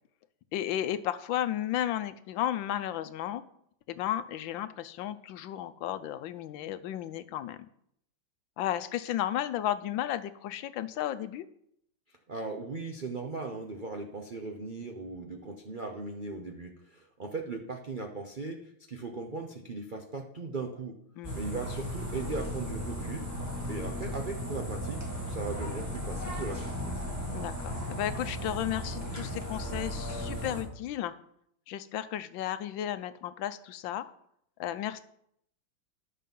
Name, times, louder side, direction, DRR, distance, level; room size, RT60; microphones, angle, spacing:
voice 1, 0.5-3.4 3.9-7.6 8.6-11.4 21.2-21.4 27.3-31.1 31.7-34.1 34.6-35.0, left 11 dB, 75° left, 13 dB, 1.2 m, -33 dB
voice 2, 12.3-21.0 21.3-23.3 23.7-27.0, right 3 dB, 70° right, 3 dB, 0.4 m, -38 dB
sound 1, 21.2-30.6, equal, 10° right, 2.2 m, -36 dB
11.0 x 6.6 x 5.4 m, 0.71 s
omnidirectional pair, 2.3 m